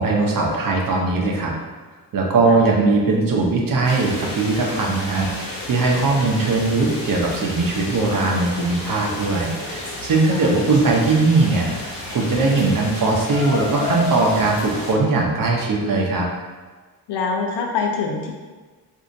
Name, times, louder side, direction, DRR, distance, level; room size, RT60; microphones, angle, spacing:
voice 1, 0.0-1.5 2.1-5.3 5.7-16.3, right 3 dB, 55° right, -1 dB, 0.8 m, -20 dB
sound 1, 3.8-14.9, left 2 dB, 55° left, 1.1 m, -31 dB
voice 2, 10.3-10.8 17.1-18.3, left 4 dB, 80° left, 1 dB, 0.7 m, -25 dB
4.2 x 2.7 x 2.6 m, 1.4 s
cardioid pair, 105°, 40 cm